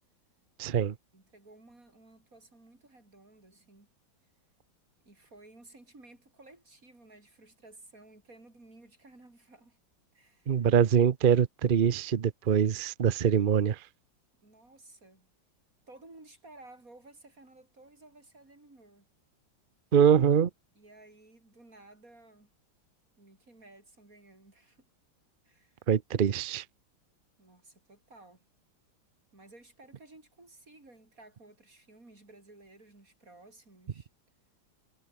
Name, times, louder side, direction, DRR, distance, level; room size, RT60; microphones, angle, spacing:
voice 1, 0.6-0.9 10.5-13.8 19.9-20.5 25.9-26.6, right 8 dB, 70° right, 0.4 m, -24 dB
voice 2, 1.1-3.9 5.0-9.8 10.1-10.7 14.4-15.3 15.9-19.1 20.7-22.5 23.2-24.9 25.4-25.8 27.4-28.5 29.3-34.1, right 2 dB, 45° right, 6.3 m, -55 dB
omnidirectional pair, 2.1 m